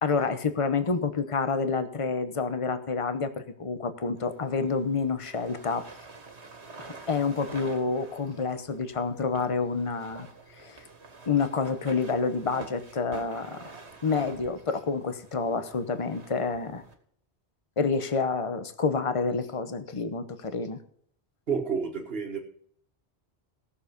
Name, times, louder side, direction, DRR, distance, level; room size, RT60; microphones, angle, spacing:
voice 1, 0.0-5.8 6.8-10.3 10.6-10.8 11.3-13.6 14.0-16.8 17.8-20.8, left 4 dB, 30° left, 10 dB, 1.0 m, -28 dB
sound 1, 4.2-16.9, right 3 dB, 80° right, 2.0 m, -48 dB
voice 2, 21.5-22.4, right 6 dB, 60° right, -3 dB, 1.9 m, -29 dB
16.5 x 7.1 x 5.3 m, 0.62 s
omnidirectional pair, 1.1 m